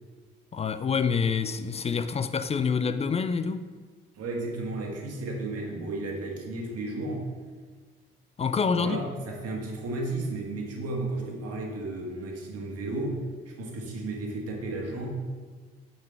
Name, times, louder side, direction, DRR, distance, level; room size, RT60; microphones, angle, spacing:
voice 1, 0.5-3.7 8.4-9.0, left 5 dB, 20° left, 0.4 m, -27 dB
voice 2, 4.1-7.3 8.7-15.1, right 2 dB, 50° right, 1.6 m, -33 dB
8.4 x 5.5 x 3.4 m
figure-of-eight pair, 45°, 32 cm